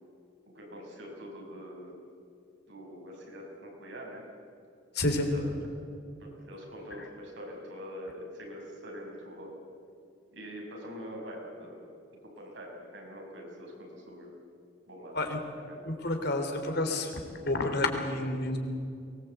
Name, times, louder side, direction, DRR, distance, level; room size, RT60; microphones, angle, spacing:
voice 1, 0.5-1.9 2.7-4.2 5.3-5.5 6.2-9.5 10.3-11.8 12.2-14.3 14.9-15.3 15.7-15.8, equal, 75° right, 0 dB, 6.0 m, -44 dB
voice 2, 4.9-5.3 15.1-15.4 15.8-17.1 17.4-18.6, left 2 dB, 60° left, 5 dB, 3.2 m, -29 dB
23.5 x 20.0 x 8.1 m, 2.4 s
head